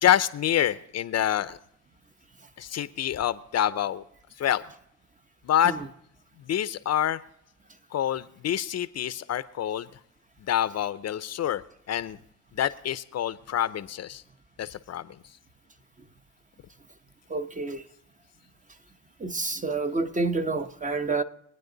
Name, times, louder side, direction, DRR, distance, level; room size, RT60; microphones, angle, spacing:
voice 1, 0.0-1.6 2.6-4.0 4.4-4.6 5.4-5.7 6.4-7.2 7.9-9.9 10.5-11.6 11.9-12.2 12.5-14.2 14.6-15.1, left 11 dB, 50° left, 0.7 m, -26 dB
voice 2, 17.3-17.8 19.2-21.2, right 3 dB, 25° right, 1.0 m, -28 dB
23.5 x 9.2 x 3.9 m
supercardioid pair, 85°, 33 cm